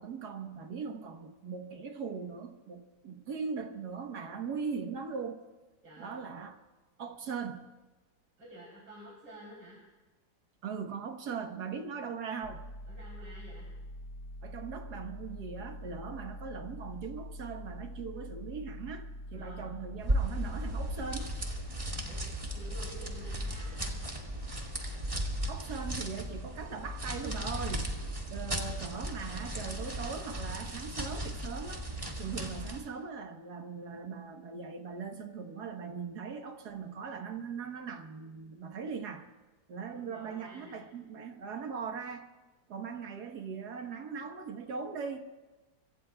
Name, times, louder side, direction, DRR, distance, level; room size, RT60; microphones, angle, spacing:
voice 1, 0.0-5.4 6.0-6.6 7.0-7.7 10.6-12.6 14.4-21.3 25.5-27.9 28.3-31.9 32.2-39.3 39.7-42.3 42.7-45.3, right 5 dB, 65° right, 5 dB, 1.7 m, -40 dB
voice 2, 8.4-9.8 12.9-13.7 19.3-19.7 22.0-22.2 22.5-23.8 39.9-40.9, equal, 90° right, -5 dB, 4.4 m, -50 dB
sound 1, 12.4-23.9, left 1 dB, 70° left, 5.0 m, -44 dB
sound 2, 20.0-32.9, right 1 dB, 20° right, 2.0 m, -36 dB
25.5 x 24.0 x 2.3 m, 1.2 s
omnidirectional pair, 1.9 m